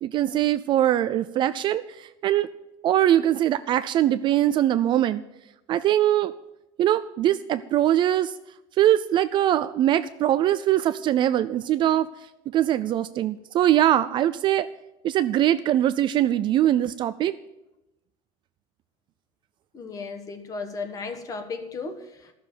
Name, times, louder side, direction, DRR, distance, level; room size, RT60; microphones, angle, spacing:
voice 1, 0.0-2.5 2.8-5.2 5.7-6.3 6.8-8.3 8.8-12.1 12.5-14.7 15.0-17.3, right 12 dB, 35° right, 13 dB, 0.4 m, -22 dB
voice 2, 19.7-22.3, left 4 dB, 25° left, 7 dB, 1.3 m, -35 dB
13.5 x 6.9 x 9.4 m, 0.92 s
cardioid pair, 180°, 13 cm